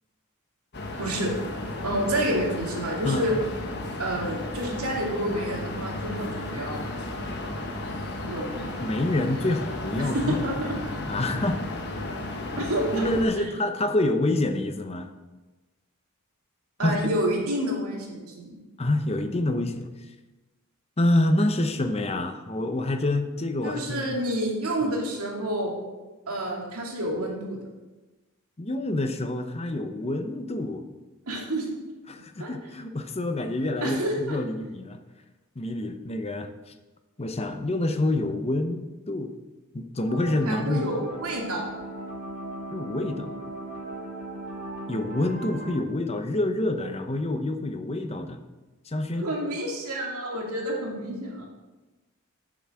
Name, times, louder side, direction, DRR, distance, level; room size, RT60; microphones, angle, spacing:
sound 1, 0.7-13.2, left 2 dB, 50° left, 1.4 m, -34 dB
voice 1, 1.0-1.3 1.8-3.4 4.0-6.9 8.3-8.5 10.0-10.7 12.6-13.0 13.4-13.5 16.8-18.6 23.6-25.7 26.3-27.6 31.3-32.0 32.4-32.5 33.8-34.4 40.5-41.6 49.2-51.5, right 1 dB, 80° right, -1 dB, 2.3 m, -29 dB
voice 2, 8.8-10.5 11.1-11.6 12.9-15.1 16.8-17.0 18.8-19.9 21.0-24.1 24.8-25.0 28.6-30.8 32.1-35.0 35.6-36.5 37.2-39.3 39.7-40.8 42.7-43.3 44.9-48.4 48.9-49.3, left 1 dB, 30° left, 8 dB, 0.7 m, -27 dB
sound 2, 40.1-45.8, right 1 dB, 50° right, 2.6 m, -37 dB
7.9 x 6.0 x 7.5 m, 1.2 s
head